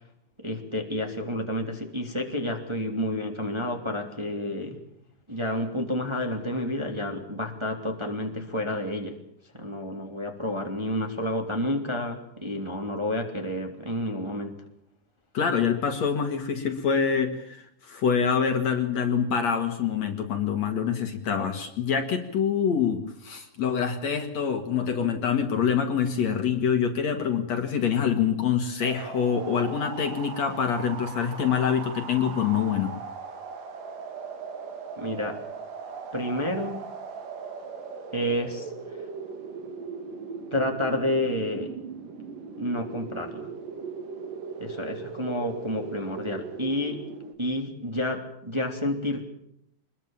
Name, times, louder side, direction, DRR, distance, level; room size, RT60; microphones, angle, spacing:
voice 1, 0.4-4.8 5.3-9.1 9.5-14.5 35.0-35.4 36.1-36.8 38.1-38.7 40.5-41.7 42.6-43.5 44.6-47.0 47.4-49.2, left 1 dB, 10° right, 3 dB, 2.6 m, -30 dB
voice 2, 15.3-32.9, left 7 dB, 55° left, 7 dB, 2.8 m, -25 dB
sound 1, 28.8-47.3, right 5 dB, 70° right, 4.2 m, -39 dB
25.5 x 21.5 x 7.3 m, 0.73 s
omnidirectional pair, 4.0 m